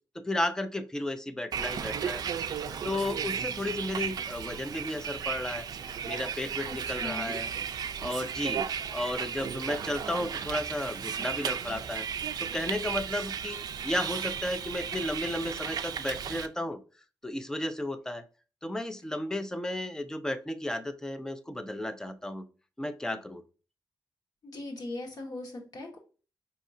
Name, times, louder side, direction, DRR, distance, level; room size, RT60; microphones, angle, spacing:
voice 1, 0.2-2.2 2.8-5.7 6.0-7.5 8.0-12.1 12.4-16.8 17.2-18.3 18.6-22.5 22.8-23.4, left 1 dB, 10° left, 11 dB, 0.4 m, -33 dB
Bus, 1.5-16.5, right 7 dB, 60° right, 0.4 m, -35 dB
voice 2, 6.6-7.3 24.4-26.0, left 2 dB, 60° left, 1 dB, 1.4 m, -39 dB
5.1 x 2.8 x 2.6 m, 0.36 s
wide cardioid pair, 125°, 8 cm